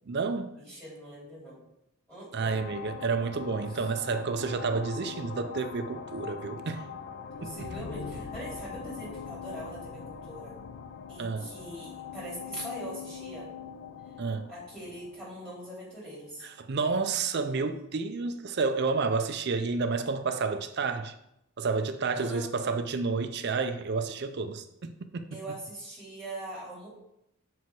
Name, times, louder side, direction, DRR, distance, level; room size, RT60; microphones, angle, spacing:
voice 1, 0.1-0.5 2.3-6.9 7.4-7.7 11.2-11.5 14.2-14.5 16.4-21.1 21.6-25.3, right 4 dB, 50° right, 9 dB, 0.5 m, -30 dB
voice 2, 0.6-1.6 2.1-2.6 7.4-10.5 11.1-13.5 14.5-16.5 22.1-22.5 25.3-26.9, right 1 dB, 5° left, -8 dB, 2.9 m, -42 dB
sound 1, 2.4-16.6, left 6 dB, 55° left, 0.5 m, -42 dB
6.8 x 4.7 x 4.6 m, 0.82 s
head